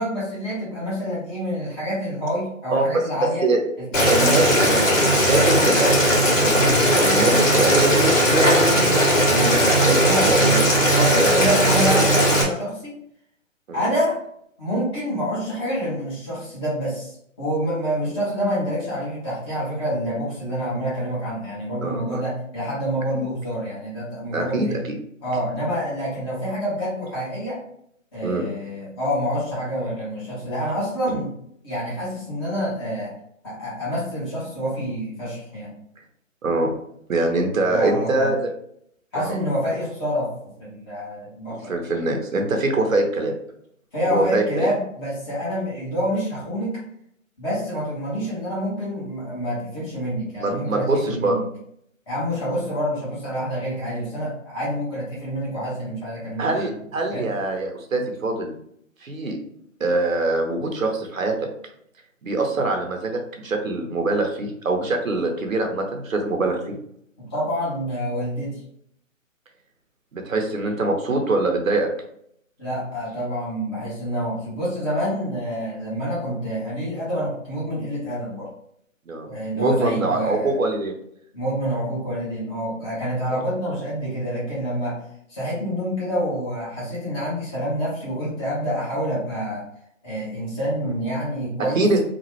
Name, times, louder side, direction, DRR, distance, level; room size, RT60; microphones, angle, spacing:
voice 1, 0.0-3.5 3.8-5.0 5.3-5.7 10.0-13.0 13.7-14.2 14.6-24.8 25.2-27.6 28.1-31.3 31.6-33.1 33.4-35.7 37.5-38.3 39.1-40.3 40.6-41.8 43.9-46.8 47.4-51.4 52.1-56.7 57.1-57.2 67.2-68.6 72.6-78.5 79.3-80.6 81.3-85.0 85.3-89.6 90.0-91.9, equal, 20° left, -8 dB, 1.1 m, -27 dB
voice 2, 3.2-3.6 4.1-4.6 5.3-5.9 6.4-9.0 9.3-10.6 11.1-11.5 13.7-13.8 21.8-22.2 23.1-23.2 24.3-25.0 28.2-28.4 36.4-36.7 37.1-38.5 39.1-39.4 41.5-43.3 44.0-44.7 50.4-51.3 56.4-58.5 59.0-59.4 59.8-61.4 62.2-66.7 70.1-71.9 79.1-79.3 79.5-80.9 83.3-83.4 91.6-92.0, right 2 dB, 75° right, 4 dB, 0.8 m, -23 dB
Boiling, 3.9-12.4, equal, 65° left, 1.4 m, -18 dB
3.0 x 2.3 x 3.0 m, 0.71 s
figure-of-eight pair, 150°, 40 cm